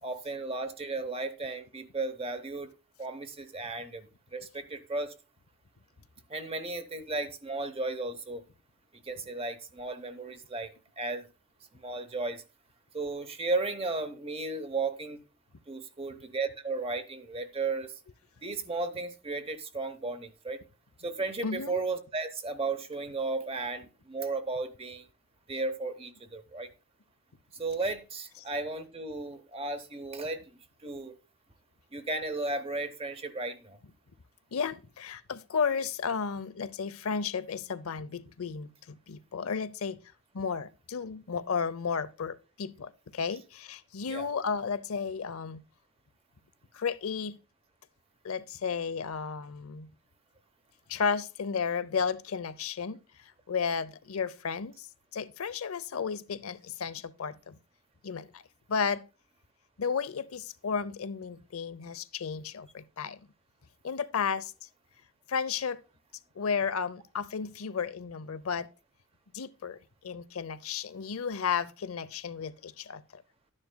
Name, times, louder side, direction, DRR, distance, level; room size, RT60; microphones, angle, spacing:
voice 1, 0.0-2.7 3.0-5.1 6.3-8.4 9.0-11.3 11.7-12.4 12.9-15.2 15.7-17.9 18.4-20.6 21.0-25.1 25.5-26.7 27.5-30.4 30.8-31.1 31.9-33.8 44.1-44.3, right 3 dB, 25° right, 0.8 m, -34 dB
voice 2, 21.4-21.8 34.5-40.0 40.3-45.6 46.7-47.4 48.2-49.9 50.9-54.9 55.1-57.6 58.0-58.4 58.7-59.0 59.8-63.2 63.8-64.5 65.3-65.8 66.4-68.7 69.3-73.2, left 6 dB, 85° left, 0.6 m, -33 dB
12.5 x 9.8 x 2.2 m
head